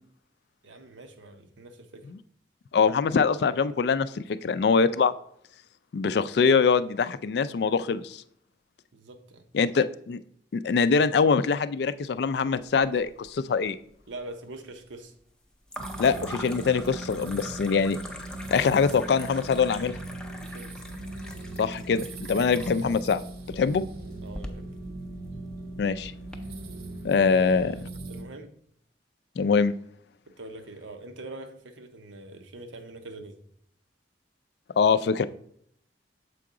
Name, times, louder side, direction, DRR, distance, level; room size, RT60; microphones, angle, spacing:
voice 1, 0.6-2.1 8.9-9.5 14.1-15.1 20.4-20.7 24.2-24.7 27.1-28.5 30.4-33.4, right 2 dB, 90° right, 7 dB, 0.8 m, -43 dB
voice 2, 2.7-5.1 5.9-8.2 9.5-10.2 10.6-13.8 16.0-18.0 18.5-20.0 21.6-23.2 23.5-23.8 25.8-26.1 27.0-27.7 29.4-29.7 34.8-35.2, left 5 dB, 60° left, 14 dB, 0.3 m, -23 dB
sound 1, 12.5-13.3 13.6-14.2 15.7-26.4, left 1 dB, 5° left, 0.5 m, -43 dB
sound 2, 15.8-28.2, right 2 dB, 55° right, 0.6 m, -39 dB
6.8 x 4.7 x 3.7 m, 0.67 s
head